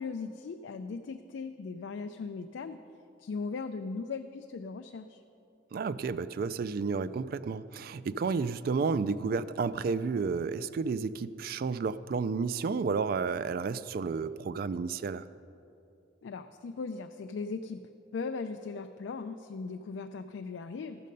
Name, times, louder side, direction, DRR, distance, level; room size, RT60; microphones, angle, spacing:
voice 1, 0.0-2.8 3.2-5.2 16.2-17.8 18.1-21.0, left 4 dB, 75° left, 7 dB, 0.4 m, -38 dB
voice 2, 5.7-15.2, right 5 dB, 50° right, 15 dB, 0.3 m, -31 dB
14.5 x 6.5 x 5.2 m, 2.7 s
head